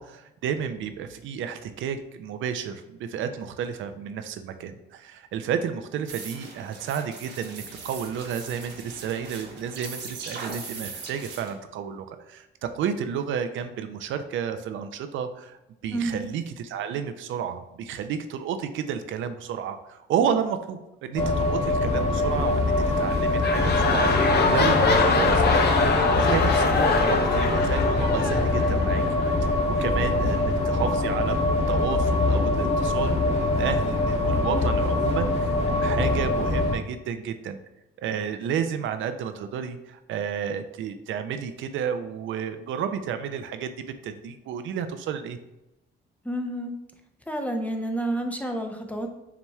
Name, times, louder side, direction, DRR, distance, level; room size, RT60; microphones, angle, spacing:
voice 1, 0.0-25.9 26.1-29.0 29.4-31.4 31.7-37.6 38.0-43.7 44.0-45.4, right 8 dB, 75° right, 8 dB, 0.5 m, -31 dB
sound 1, 6.1-11.5, right 4 dB, 60° right, 1.1 m, -40 dB
voice 2, 15.9-16.3 30.2-30.4 46.2-46.7 47.3-49.1, right 1 dB, 5° left, 3 dB, 0.6 m, -29 dB
sound 2, 21.2-36.8, left 2 dB, 35° left, 1.2 m, -23 dB
sound 3, 23.0-29.3 30.0-30.1, left 4 dB, 55° left, 0.7 m, -24 dB
7.2 x 3.0 x 2.3 m, 0.93 s
cardioid pair, 90°, 20 cm